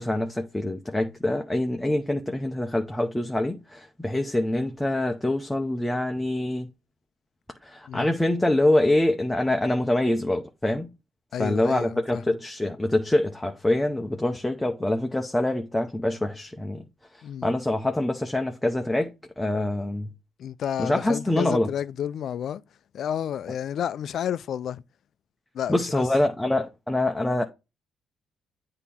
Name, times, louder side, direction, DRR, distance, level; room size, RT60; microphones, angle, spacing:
voice 1, 0.0-6.7 7.6-10.9 11.4-16.8 17.4-20.1 20.8-21.7 25.7-27.4, left 1 dB, 10° left, 0.8 m, -25 dB
voice 2, 11.3-12.2 17.2-17.5 20.4-22.6 22.9-24.8 25.5-26.0, left 9 dB, 65° left, 0.4 m, -31 dB
8.2 x 2.9 x 5.5 m
cardioid pair, 90°, 0 cm